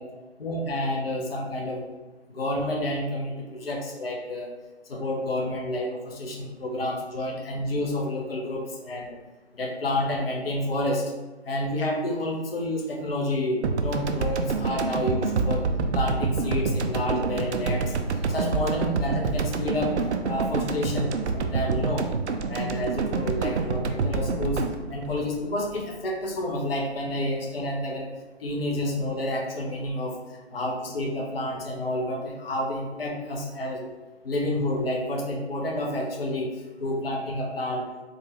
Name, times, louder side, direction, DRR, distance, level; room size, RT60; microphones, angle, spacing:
voice 1, 0.4-1.9 2.3-4.5 4.9-9.2 9.5-11.1 11.4-18.0 18.3-22.1 22.5-24.6 24.9-28.1 28.4-33.9 34.2-37.9, left 1 dB, 55° left, -1 dB, 0.7 m, -29 dB
sound 1, 13.6-26.1, right 4 dB, 75° right, 0.5 m, -27 dB
3.8 x 2.3 x 3.0 m, 1.2 s
figure-of-eight pair, 145°, 35 cm